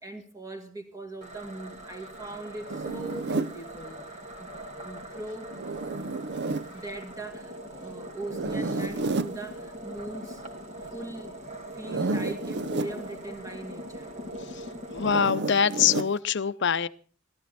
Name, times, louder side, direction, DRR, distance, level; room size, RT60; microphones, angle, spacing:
voice 1, 0.0-5.5 6.7-10.4 10.9-11.4 11.7-14.2, right 2 dB, 15° right, 2.3 m, -40 dB
sound 1, 1.2-15.2, equal, 30° right, 2.6 m, -42 dB
Zipper (clothing), 2.7-3.6 5.5-6.7 8.3-9.4 11.8-12.9 15.0-16.1, right 3 dB, 50° right, 0.6 m, -30 dB
voice 2, 14.9-16.9, left 7 dB, 55° left, 0.7 m, -24 dB
18.5 x 13.0 x 4.1 m
head